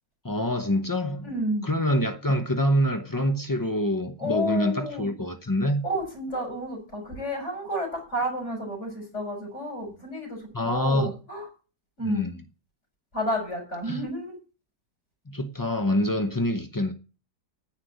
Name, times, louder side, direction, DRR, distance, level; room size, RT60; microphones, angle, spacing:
voice 1, 0.2-1.3 1.6-5.8 10.5-11.1 12.0-12.3 13.8-14.0 15.3-16.9, equal, 25° left, 0.5 m, -26 dB
voice 2, 1.2-1.7 4.2-5.1 5.8-11.4 12.0-12.3 13.1-14.4, equal, 40° left, 6.8 m, -31 dB
10.0 x 8.5 x 7.9 m
omnidirectional pair, 1.8 m